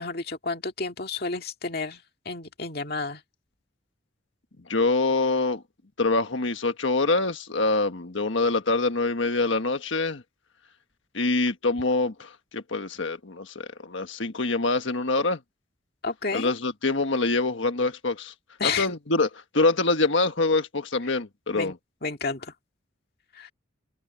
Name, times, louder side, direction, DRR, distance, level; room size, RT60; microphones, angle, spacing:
voice 1, 0.0-3.2 16.0-16.5 18.6-18.9 21.5-21.7 22.0-22.5 23.4-23.5, left 4 dB, 50° left, 2.1 m, -31 dB
voice 2, 4.7-5.6 6.0-10.2 11.1-15.4 16.3-18.3 18.6-19.3 19.5-21.7, left 3 dB, 70° left, 1.5 m, -25 dB
head